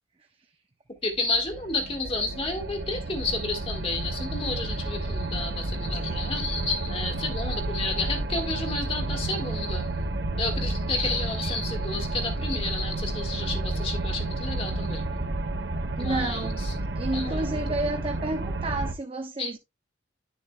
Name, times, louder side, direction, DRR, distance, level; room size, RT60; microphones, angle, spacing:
voice 1, 1.0-9.9 10.4-15.1 16.0-16.7 17.1-17.6 19.4-19.5, left 3 dB, 30° left, 1.7 m, -31 dB
sound 1, 1.2-18.9, right 2 dB, 60° right, 1.1 m, -31 dB
voice 2, 16.0-19.6, right 2 dB, 30° right, 0.7 m, -31 dB
10.5 x 7.2 x 2.2 m
head